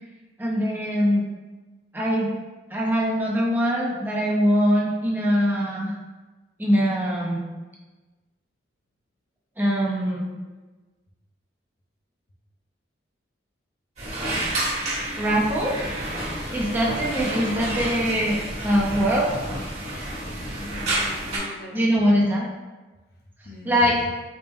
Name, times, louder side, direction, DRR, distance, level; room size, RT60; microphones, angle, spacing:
voice 1, 0.4-1.3 1.9-2.3 2.7-6.0 6.6-7.5 9.6-10.3 15.1-15.8 16.5-19.3 21.7-22.5 23.6-24.0, equal, 10° right, -5 dB, 0.5 m, -22 dB
sound 1, 14.0-21.4, right 1 dB, 35° right, 1.3 m, -29 dB
voice 2, 20.1-21.8 23.4-24.0, left 1 dB, 55° left, -1 dB, 0.6 m, -40 dB
4.2 x 2.1 x 3.4 m, 1.2 s
head